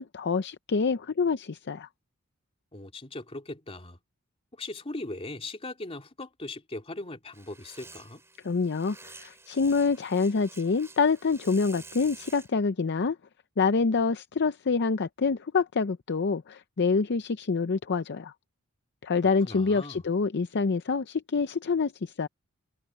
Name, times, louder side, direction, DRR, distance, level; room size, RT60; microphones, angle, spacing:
voice 1, 0.0-1.9 8.4-13.2 13.6-18.3 19.0-22.3, left 4 dB, 50° left, 0.6 m, -26 dB
voice 2, 2.7-4.0 4.5-8.2 19.4-20.0, left 2 dB, 25° left, 2.9 m, -39 dB
sound 1, 7.3-12.5, right 3 dB, 10° right, 3.2 m, -50 dB
head